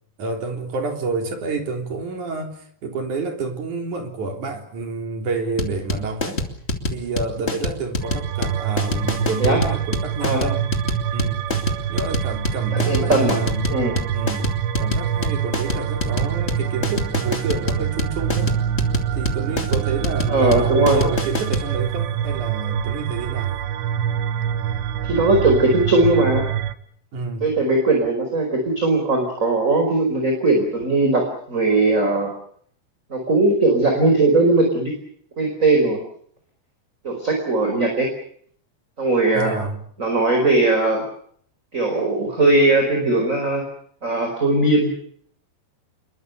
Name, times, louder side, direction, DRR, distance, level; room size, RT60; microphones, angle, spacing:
voice 1, 0.2-6.4 6.9-10.8 11.1-11.5 11.9-13.8 14.1-18.6 19.1-23.6 27.1-27.6 39.3-39.8, right 3 dB, 45° right, 4.7 m, -29 dB
sound 1, 5.6-21.7, left 3 dB, 20° left, 1.8 m, -26 dB
sound 2, 8.0-26.8, right 10 dB, 85° right, 3.5 m, -25 dB
voice 2, 12.7-13.4 13.7-13.9 20.3-21.0 25.1-26.4 27.4-32.3 33.1-34.9 35.4-36.0 37.0-38.1 39.0-39.5 40.0-41.0 41.7-43.6 44.0-44.9, right 2 dB, 20° right, 4.7 m, -19 dB
28.0 x 22.5 x 6.8 m
omnidirectional pair, 4.9 m